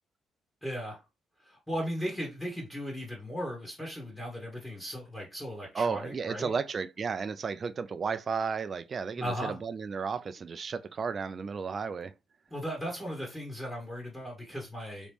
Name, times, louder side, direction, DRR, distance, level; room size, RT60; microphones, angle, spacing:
voice 1, 0.6-1.0 1.4-6.5 9.2-9.6 12.5-15.1, equal, 10° left, 1.4 m, -37 dB
voice 2, 5.7-12.1, right 5 dB, 45° right, 0.3 m, -33 dB
3.0 x 2.6 x 3.4 m
cardioid pair, 90°, 0 cm